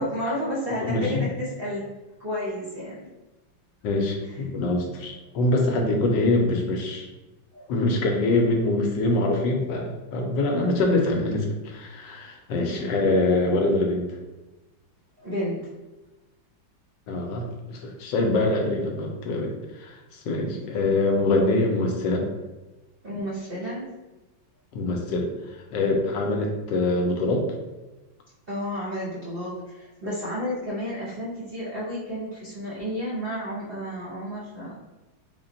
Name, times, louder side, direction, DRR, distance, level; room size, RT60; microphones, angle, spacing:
voice 1, 0.0-1.9 2.2-3.0 7.5-7.7 12.7-13.0 15.2-15.6 20.5-20.6 23.0-23.9 28.5-34.7, equal, 45° right, -7 dB, 0.7 m, -31 dB
voice 2, 0.8-1.3 3.8-7.1 7.7-14.1 17.1-22.3 24.7-27.5, left 2 dB, 75° left, 2 dB, 1.2 m, -24 dB
4.0 x 2.2 x 3.8 m, 1.1 s
omnidirectional pair, 2.1 m